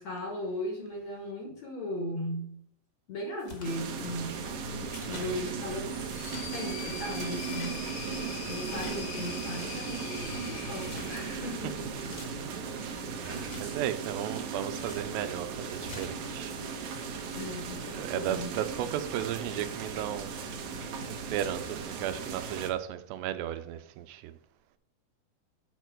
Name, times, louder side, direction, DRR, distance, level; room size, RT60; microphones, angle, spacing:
voice 1, 0.0-2.6 3.1-5.9 6.5-7.9 8.4-11.9 13.2-13.7 17.3-18.6, left 1 dB, 60° left, 2.0 m, -37 dB
sound 1, 3.4-3.7 4.9-5.3 6.0-6.5 7.3-7.7 8.6-9.2 10.7-11.1 11.9-12.3 13.3-13.7 14.7-15.1 15.7-16.1, left 2 dB, 40° left, 1.3 m, -46 dB
sound 2, 3.6-22.7, right 5 dB, 65° right, 2.0 m, -37 dB
sound 3, 5.7-11.9, left 6 dB, 75° left, 3.4 m, -43 dB
voice 2, 12.4-12.8 13.2-16.6 16.9-17.0 17.9-20.4 21.1-24.3, right 11 dB, 90° right, 2.8 m, -35 dB
9.0 x 4.6 x 6.0 m
omnidirectional pair, 4.8 m